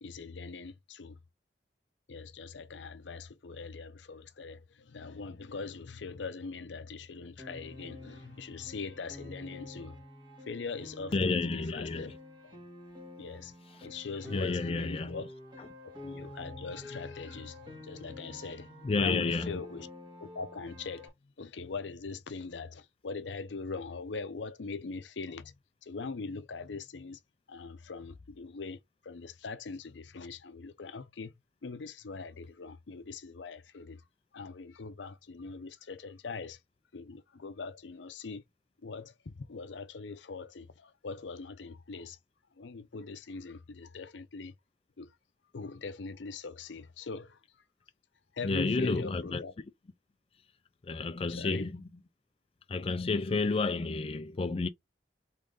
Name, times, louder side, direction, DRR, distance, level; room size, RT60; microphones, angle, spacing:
voice 1, 0.0-1.2 2.1-10.0 10.4-12.1 12.4-12.6 13.2-13.6 13.8-15.3 16.0-19.9 20.2-27.2 27.5-34.0 34.3-36.6 36.9-38.4 38.8-42.2 42.5-44.5 45.0-45.2 45.5-47.6 48.3-49.5 51.3-51.7, left 4 dB, 90° left, 0.6 m, -42 dB
Piano, 7.4-21.1, left 1 dB, 25° right, 1.5 m, -48 dB
voice 2, 11.1-12.1 14.3-15.2 18.8-19.5 48.4-49.4 50.8-51.7 52.7-54.7, left 3 dB, 30° left, 0.4 m, -30 dB
3.7 x 3.6 x 3.9 m
head